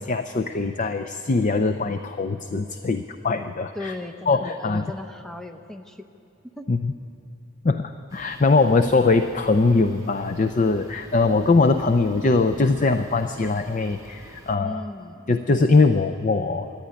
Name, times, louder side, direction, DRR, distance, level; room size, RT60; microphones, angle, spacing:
voice 1, 0.0-3.9 4.3-4.8 6.7-6.9 7.6-14.8 15.3-16.7, left 3 dB, 35° left, 9 dB, 0.5 m, -21 dB
voice 2, 3.7-6.1 6.5-6.7 14.6-15.3, left 1 dB, ahead, 6 dB, 0.7 m, -37 dB
sound 1, 8.1-14.6, equal, 15° right, 1.1 m, -45 dB
26.0 x 10.5 x 9.7 m, 2.8 s
head